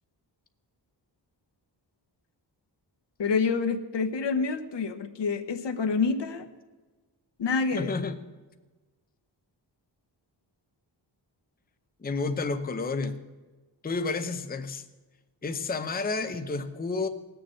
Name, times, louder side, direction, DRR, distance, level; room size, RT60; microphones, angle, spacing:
voice 1, 3.2-6.5 7.4-7.9, left 4 dB, 70° left, 6 dB, 1.1 m, -27 dB
voice 2, 7.7-8.2 12.0-13.2 13.8-14.8 15.4-17.1, left 3 dB, 20° left, 8 dB, 0.7 m, -30 dB
18.0 x 6.9 x 7.6 m, 1.2 s
wide cardioid pair, 145°, 43 cm